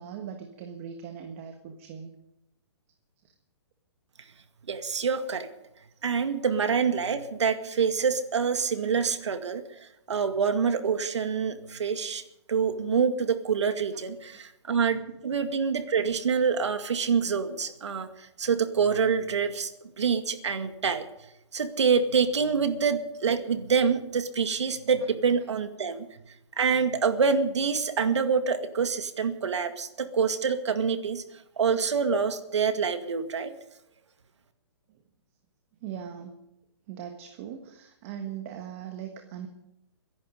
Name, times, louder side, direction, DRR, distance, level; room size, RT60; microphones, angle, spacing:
voice 1, 0.0-2.1 34.9-35.0 35.8-36.4 36.9-39.5, right 8 dB, 30° right, 5 dB, 1.4 m, -40 dB
voice 2, 4.7-5.5 6.0-12.2 12.5-19.7 20.0-21.1 21.5-26.2 26.6-31.2 31.6-33.5, right 6 dB, 85° right, 8 dB, 2.1 m, -26 dB
24.0 x 11.0 x 5.2 m, 0.85 s
hypercardioid pair, 160°, 15 cm